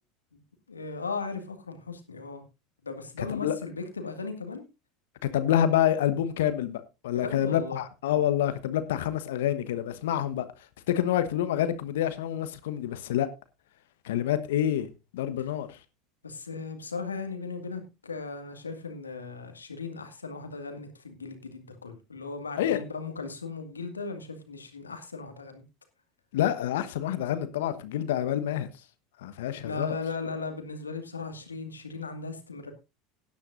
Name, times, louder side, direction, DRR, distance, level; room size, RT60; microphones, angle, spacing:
voice 1, 0.7-2.4 2.8-4.7 7.1-7.8 16.2-25.6 29.6-32.7, left 4 dB, 90° left, 1.9 m, -37 dB
voice 2, 3.2-3.6 5.3-10.4 10.9-13.3 14.0-15.8 22.6-22.8 26.3-28.7 29.2-30.0, left 11 dB, 70° left, 1.1 m, -27 dB
17.0 x 10.0 x 2.5 m
hypercardioid pair, 75°, 0 cm